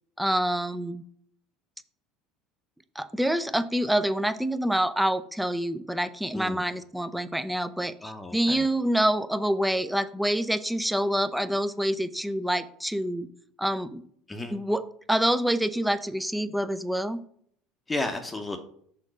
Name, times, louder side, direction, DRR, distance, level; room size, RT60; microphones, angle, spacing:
voice 1, 0.2-1.0 3.0-13.3 13.6-14.0 14.5-17.2, right 1 dB, 5° right, 13 dB, 0.6 m, -27 dB
voice 2, 8.0-8.7 14.3-14.6 17.9-18.6, left 2 dB, 20° left, 5 dB, 0.9 m, -33 dB
6.5 x 3.7 x 6.2 m, 0.63 s
hypercardioid pair, 70°, 0 cm